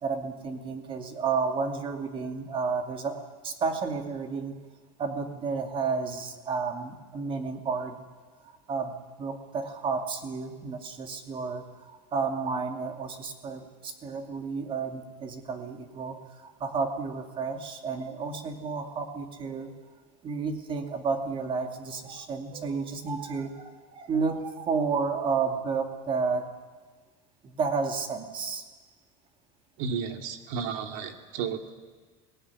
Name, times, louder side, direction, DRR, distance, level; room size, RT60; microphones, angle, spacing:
voice 1, 0.0-4.5 5.0-8.1 8.7-19.7 20.2-26.5 27.4-28.6, right 5 dB, 30° right, 5 dB, 2.4 m, -31 dB
voice 2, 29.8-31.7, right 6 dB, 70° right, 5 dB, 2.6 m, -33 dB
22.0 x 19.0 x 9.8 m, 1.4 s
cardioid pair, 155°, 18 cm